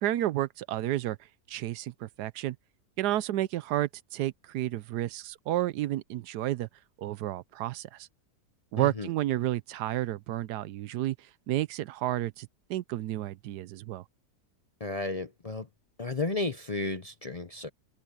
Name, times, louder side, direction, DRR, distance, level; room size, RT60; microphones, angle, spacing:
voice 1, 0.0-1.2 1.5-2.6 3.0-6.7 7.0-8.1 8.7-11.1 11.5-14.0, right 14 dB, 85° right, 1.2 m, -31 dB
voice 2, 8.8-9.1 14.8-15.7 16.0-17.7, left 3 dB, 35° left, 0.6 m, -33 dB
omnidirectional pair, 1.7 m